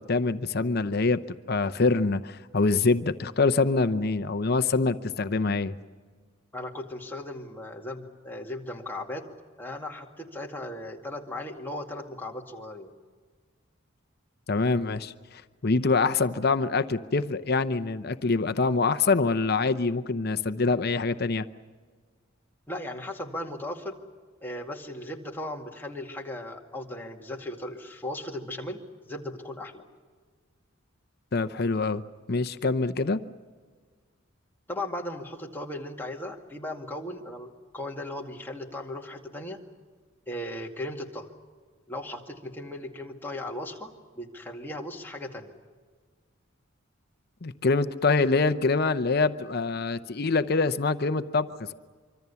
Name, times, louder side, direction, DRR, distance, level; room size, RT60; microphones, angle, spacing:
voice 1, 0.0-5.7 14.5-21.5 31.3-32.0 32.3-33.2 47.4-51.7, left 3 dB, 50° left, 11 dB, 0.7 m, -25 dB
voice 2, 6.5-9.2 9.6-12.9 22.7-24.0 24.4-29.8 34.7-39.6 40.3-41.3 41.9-45.6, left 1 dB, 10° left, 0 dB, 2.1 m, -37 dB
25.5 x 25.0 x 7.0 m, 1.5 s
head